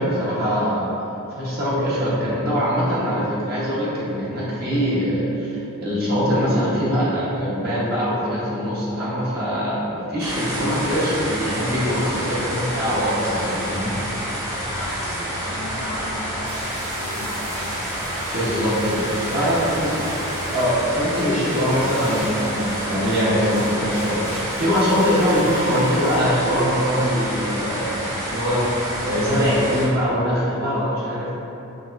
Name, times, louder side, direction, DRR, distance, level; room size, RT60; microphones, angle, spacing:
voice 1, 0.0-14.0 18.3-19.9 20.5-31.3, equal, 45° right, -8 dB, 1.1 m, -22 dB
sound 1, 10.2-29.9, equal, 15° right, 0.8 m, -29 dB
voice 2, 14.7-18.2 18.8-20.1, left 1 dB, 75° left, -7 dB, 1.2 m, -37 dB
sound 2, 16.4-26.3, right 1 dB, 75° right, 1.0 m, -36 dB
5.6 x 3.1 x 2.5 m, 2.9 s
head